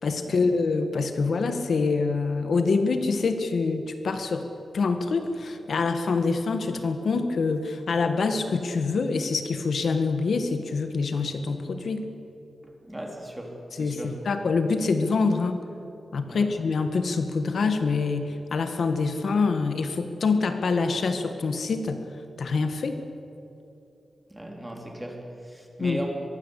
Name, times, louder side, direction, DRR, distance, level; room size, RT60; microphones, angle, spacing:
voice 1, 0.0-4.5 4.7-12.0 13.8-15.6 16.1-22.0 22.4-23.0 25.8-26.0, left 4 dB, 65° left, 7 dB, 1.7 m, -25 dB
voice 2, 12.8-14.2 16.3-16.5 24.3-26.1, right 1 dB, 5° right, 1 dB, 3.8 m, -37 dB
24.5 x 22.5 x 8.3 m, 2.8 s
wide cardioid pair, 155°, 0 cm